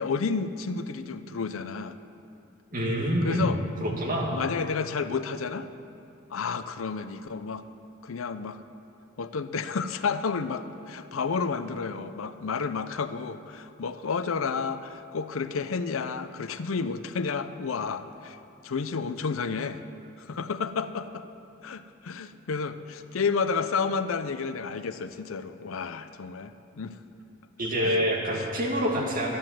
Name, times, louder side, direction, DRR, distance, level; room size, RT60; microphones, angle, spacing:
voice 1, 0.0-2.0 3.2-3.6 4.3-5.7 6.3-7.6 8.0-8.6 9.2-18.4 18.6-19.8 20.2-21.3 21.6-27.0 27.8-28.0 28.3-28.4 29.0-29.1, left 5 dB, 90° left, 11 dB, 0.6 m, -31 dB
voice 2, 2.7-3.5 3.8-4.3 27.6-29.4, equal, 45° right, -2 dB, 2.2 m, -26 dB
12.5 x 9.5 x 7.5 m, 2.7 s
head